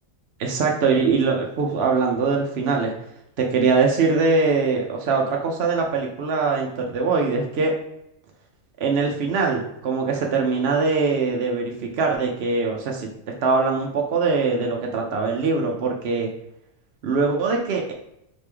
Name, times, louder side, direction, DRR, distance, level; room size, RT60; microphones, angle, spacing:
voice 1, 0.4-2.9 3.4-7.7 8.8-13.1 13.4-16.3 17.0-17.9, right 4 dB, 60° right, 0 dB, 0.8 m, -22 dB
4.0 x 3.4 x 3.3 m, 0.79 s
omnidirectional pair, 1.4 m